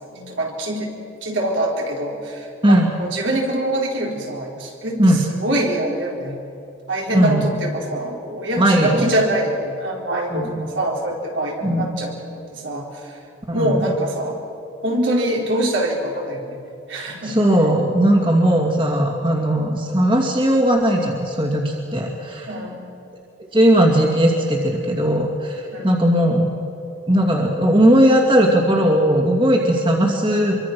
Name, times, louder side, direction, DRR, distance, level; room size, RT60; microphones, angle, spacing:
voice 1, 0.1-0.9 1.2-5.0 5.4-6.4 6.9-12.2 12.5-13.1 13.5-14.4 14.8-16.6 16.9-17.4 22.5-22.8 25.7-25.9, right 1 dB, 75° right, -1 dB, 4.4 m, -24 dB
voice 2, 7.1-7.5 8.6-9.1 10.3-10.6 11.6-12.0 13.5-13.9 17.2-22.5 23.5-26.5 27.1-30.6, right 1 dB, 25° right, 0 dB, 2.5 m, -17 dB
25.5 x 24.0 x 6.1 m, 2.7 s
head